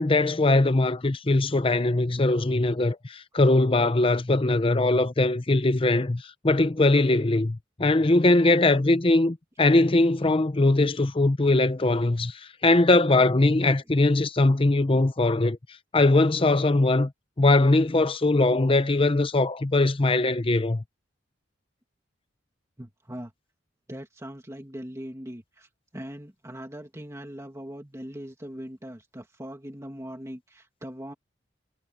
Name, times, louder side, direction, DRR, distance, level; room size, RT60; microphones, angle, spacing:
voice 1, 0.0-15.6 15.9-17.1 17.4-20.8, left 2 dB, 30° left, 0.7 m, -21 dB
voice 2, 22.8-23.3 23.9-31.1, equal, 15° right, 2.4 m, -40 dB
head